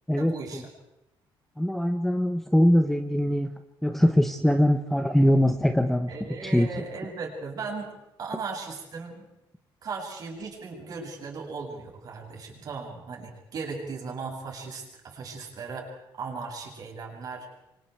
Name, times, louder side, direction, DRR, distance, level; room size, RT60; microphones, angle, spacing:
voice 1, 0.2-0.7 6.1-7.9 8.2-9.3 9.8-17.5, right 4 dB, 45° right, 0 dB, 7.1 m, -37 dB
voice 2, 1.6-3.5 3.8-6.1 6.4-6.7, equal, 5° left, 8 dB, 1.0 m, -22 dB
28.5 x 25.0 x 4.6 m, 0.92 s
cardioid pair, 150°, 9 cm